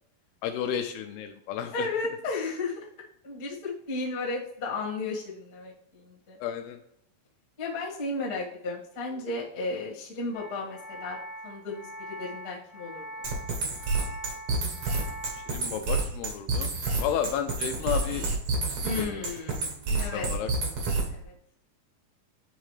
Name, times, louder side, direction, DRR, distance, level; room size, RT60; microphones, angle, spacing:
voice 1, 0.4-1.9 6.4-6.8 15.5-16.7 17.0-18.2 19.0-19.2 19.9-20.5, left 8 dB, 80° left, 6 dB, 2.4 m, -32 dB
voice 2, 1.7-2.9 3.2-6.4 7.6-11.2 11.4-13.1 18.8-19.7 20.0-20.3 21.1-21.3, left 3 dB, 60° left, -4 dB, 0.9 m, -34 dB
sound 1, 10.3-15.5, equal, ahead, 0.4 m, -42 dB
sound 2, 13.2-21.2, right 3 dB, 80° right, 1.4 m, -29 dB
9.9 x 3.6 x 3.2 m, 0.73 s
omnidirectional pair, 4.8 m